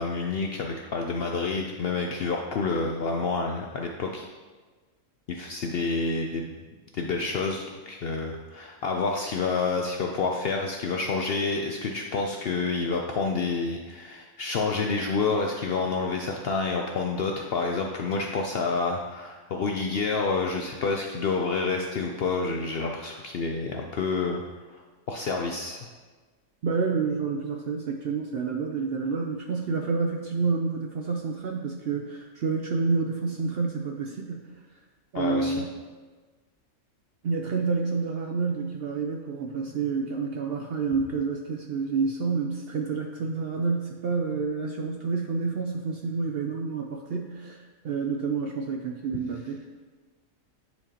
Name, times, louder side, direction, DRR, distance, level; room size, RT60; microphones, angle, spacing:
voice 1, 0.0-4.3 5.3-6.6 6.9-24.4 24.7-25.9 35.1-35.6, left 4 dB, 65° left, 1 dB, 0.6 m, -28 dB
voice 2, 26.6-34.5 35.1-35.7 37.2-49.7, right 4 dB, 65° right, 2 dB, 0.6 m, -29 dB
10.5 x 4.5 x 2.9 m, 1.3 s
omnidirectional pair, 1.5 m